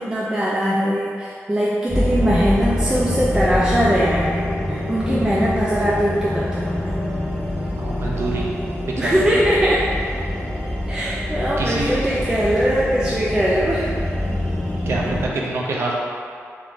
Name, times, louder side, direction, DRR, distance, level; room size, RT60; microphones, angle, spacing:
voice 1, 0.0-7.0 9.0-9.8 10.9-13.9, equal, 15° right, -7 dB, 0.4 m, -21 dB
sound 1, 1.9-15.3, left 1 dB, 5° left, 0.8 m, -25 dB
voice 2, 7.8-8.5 9.0-9.4 11.6-12.1 14.8-16.0, right 2 dB, 60° right, -3 dB, 0.6 m, -26 dB
3.5 x 3.4 x 3.7 m, 2.4 s
wide cardioid pair, 170°, 5 cm